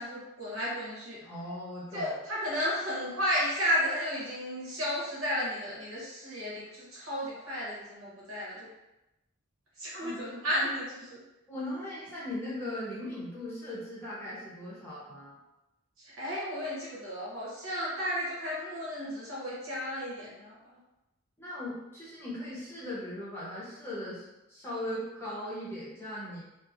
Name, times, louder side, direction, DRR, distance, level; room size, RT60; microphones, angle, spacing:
voice 1, 0.0-1.2 1.9-8.7 9.8-11.2 16.0-20.5, equal, 80° right, -7 dB, 1.1 m, -33 dB
voice 2, 1.2-2.1 10.0-10.2 11.5-15.4 21.4-26.4, left 1 dB, 10° left, -8 dB, 0.7 m, -38 dB
2.9 x 2.0 x 2.5 m, 0.95 s
head